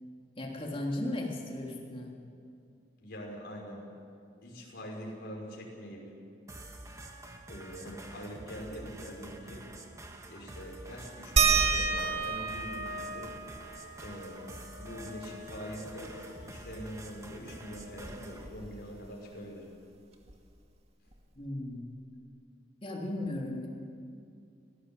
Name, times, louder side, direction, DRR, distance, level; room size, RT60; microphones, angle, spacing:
voice 1, 0.4-2.2 21.4-21.9 22.8-23.7, left 1 dB, 30° left, -1 dB, 3.3 m, -36 dB
voice 2, 3.0-3.9 4.4-6.0 7.5-9.6 10.3-13.3 14.0-14.5 14.8-16.1 16.4-19.7, equal, 60° left, -1 dB, 6.1 m, -43 dB
sound 1, 6.5-18.5, right 1 dB, 15° right, 1.9 m, -48 dB
sound 2, 11.4-16.5 16.8-16.9 17.3-19.0 20.3-20.4 21.1-21.2, right 4 dB, 35° right, 2.1 m, -32 dB
24.5 x 18.5 x 7.9 m, 2.4 s
head